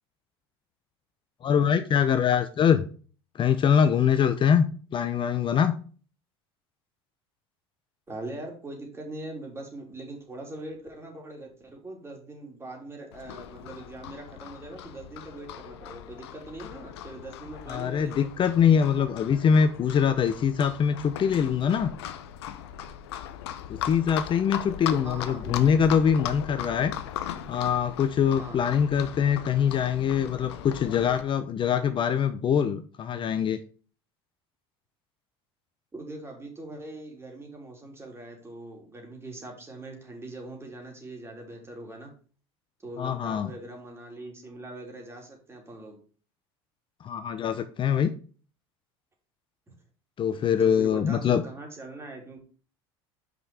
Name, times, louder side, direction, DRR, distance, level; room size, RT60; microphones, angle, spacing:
voice 1, 1.4-2.9 3.3-5.7 17.7-21.9 23.7-26.9 27.5-33.6 43.0-43.5 47.0-48.1 50.2-51.4, left 7 dB, 40° left, 11 dB, 0.7 m, -23 dB
voice 2, 8.1-18.3 25.0-25.7 28.4-28.7 35.9-42.1 42.8-46.0 49.7-49.8 50.6-52.4, right 2 dB, 20° right, 1 dB, 3.3 m, -42 dB
Livestock farm animals working animals, 13.1-31.2, left 10 dB, 80° left, 0.8 m, -38 dB
6.1 x 5.4 x 4.8 m, 0.40 s
hypercardioid pair, 85°, 13 cm